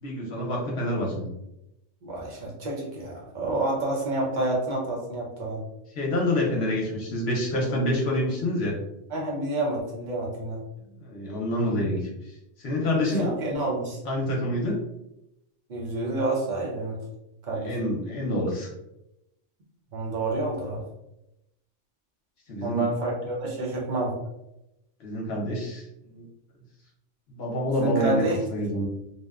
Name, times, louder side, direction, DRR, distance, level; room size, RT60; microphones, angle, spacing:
voice 1, 0.0-1.3 6.0-8.8 11.0-12.1 12.6-13.3 14.0-14.8 17.5-18.7 22.5-22.9 25.0-26.3 27.4-28.2 28.5-28.9, left 1 dB, 65° left, -2 dB, 0.9 m, -27 dB
voice 2, 2.0-5.6 9.1-10.6 12.9-14.0 15.7-17.0 17.5-17.7 19.9-20.8 22.6-24.1 27.8-28.4, right 2 dB, 50° right, -2 dB, 0.7 m, -29 dB
2.7 x 2.1 x 2.3 m, 0.87 s
omnidirectional pair, 1.2 m